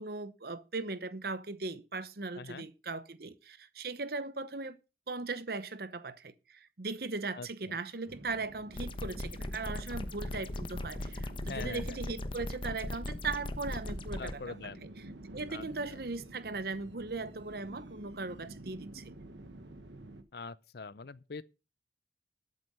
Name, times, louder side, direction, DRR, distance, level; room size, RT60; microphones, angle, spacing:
voice 1, 0.0-4.8 5.1-14.6 15.3-19.1, right 3 dB, 55° right, 0.9 m, -38 dB
voice 2, 2.3-2.7 7.4-7.8 11.5-12.0 14.2-14.9 15.5-15.6 15.9-16.0 20.3-21.4, left 4 dB, 55° left, 0.6 m, -43 dB
sound 1, 8.1-20.2, right 1 dB, 80° right, 1.4 m, -50 dB
sound 2, 8.7-14.3, left 1 dB, 25° left, 0.9 m, -38 dB
12.5 x 7.8 x 5.5 m
head